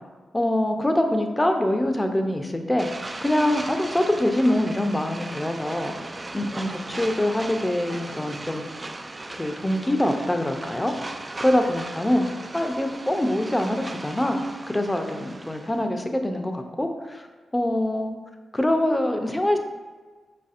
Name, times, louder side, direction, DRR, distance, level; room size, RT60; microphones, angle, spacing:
voice 1, 0.3-2.9 3.2-5.9 6.3-8.6 9.3-10.9 11.4-12.2 12.5-17.2 17.5-18.1 18.5-19.6, left 1 dB, 15° left, 5 dB, 0.6 m, -24 dB
sound 1, 2.8-15.8, right 2 dB, 30° right, 0.3 m, -37 dB
4.6 x 4.2 x 2.5 m, 1.4 s
cardioid pair, 50°, 0 cm